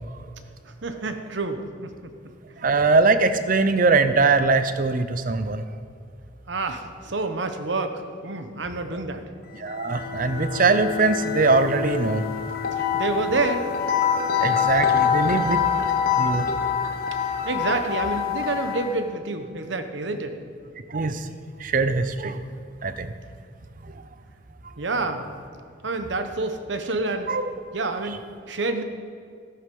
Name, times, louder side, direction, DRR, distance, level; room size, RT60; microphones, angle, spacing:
voice 1, 0.8-1.9 2.5-2.6 6.5-9.3 12.7-13.7 17.1-20.3 24.8-25.2 25.8-27.3 27.7-28.2 28.5-28.8, right 3 dB, 70° right, 7 dB, 1.0 m, -28 dB
voice 2, 2.6-5.6 9.6-12.2 14.4-15.6 16.2-16.5 20.9-21.3 21.6-22.4 22.8-23.1 27.3-27.5, right 3 dB, 45° right, 10 dB, 0.6 m, -21 dB
sound 1, 9.6-19.1, left 7 dB, 50° left, 0.9 m, -25 dB
14.5 x 8.7 x 5.4 m, 2.3 s
head